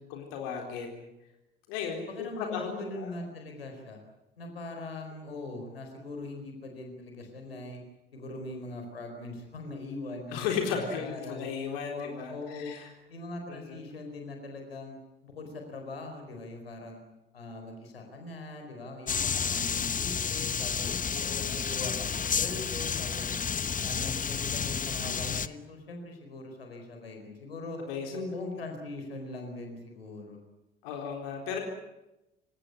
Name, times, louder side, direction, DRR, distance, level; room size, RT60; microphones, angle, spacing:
voice 1, 0.1-1.0 1.7-2.7 3.0-3.1 10.3-12.9 13.5-13.6 21.1-21.5 27.9-28.1 30.8-31.6, left 6 dB, 70° left, 2 dB, 4.1 m, -35 dB
voice 2, 2.1-4.0 4.4-7.8 8.1-11.5 11.9-12.7 13.1-15.0 15.2-17.0 17.3-21.0 21.4-23.3 23.8-27.8 28.1-30.4, left 2 dB, 85° left, 4 dB, 4.5 m, -41 dB
sound 1, 19.1-25.5, left 6 dB, 25° left, 1.2 m, -31 dB
28.5 x 17.0 x 9.8 m, 0.93 s
figure-of-eight pair, 55°, 29 cm